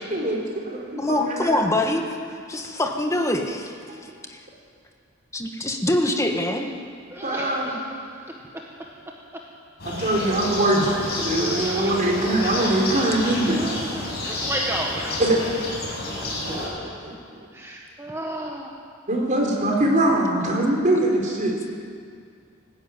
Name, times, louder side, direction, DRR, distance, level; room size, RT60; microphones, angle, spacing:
voice 1, 0.0-1.6 3.9-4.0 7.2-7.7 9.8-13.7 15.2-15.4 16.0-16.6 16.9-17.4 19.1-21.6, right 1 dB, 40° right, 0 dB, 4.0 m, -23 dB
voice 2, 1.0-2.0 2.5-3.7 4.3-4.4 5.3-6.7, left 1 dB, 15° left, 3 dB, 1.7 m, -24 dB
voice 3, 7.1-7.8 11.5-12.0 13.5-15.2 17.5-18.7, right 1 dB, 15° right, -1 dB, 1.4 m, -32 dB
sound 1, 9.8-16.7, left 1 dB, 55° left, 7.4 m, -30 dB
19.0 x 15.0 x 9.1 m, 2.2 s
head